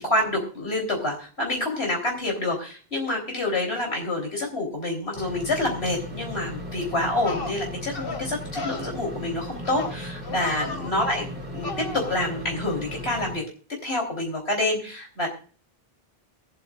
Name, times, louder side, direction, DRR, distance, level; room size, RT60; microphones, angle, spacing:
voice 1, 0.0-13.4 13.8-15.3, left 1 dB, 85° left, 0 dB, 3.9 m, -27 dB
sound 1, 5.2-13.4, equal, 45° right, 1.9 m, -37 dB
sound 2, 6.7-6.8 7.2-7.5 7.9-8.3 8.5-8.9 9.6-10.0 10.2-10.9 11.6-12.2, left 4 dB, 65° left, 1.3 m, -34 dB
22.5 x 8.0 x 2.4 m, 0.39 s
omnidirectional pair, 1.0 m